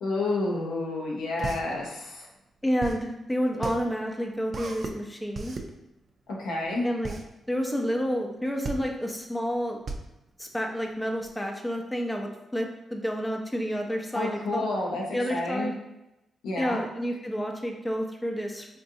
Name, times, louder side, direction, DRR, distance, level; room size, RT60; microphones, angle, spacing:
voice 1, 0.0-2.3 6.3-6.9 14.1-15.0 15.3-15.7 16.4-16.8, left 2 dB, 90° left, -3 dB, 0.8 m, -29 dB
sound 1, 0.9-11.3, right 3 dB, 55° right, 0.4 m, -37 dB
voice 2, 2.6-5.6 6.8-7.1 7.5-9.8 10.4-14.6 15.1-15.7 16.6-18.7, equal, 10° left, 1 dB, 0.6 m, -30 dB
4.0 x 2.5 x 2.7 m, 0.93 s
supercardioid pair, 60°, 0 cm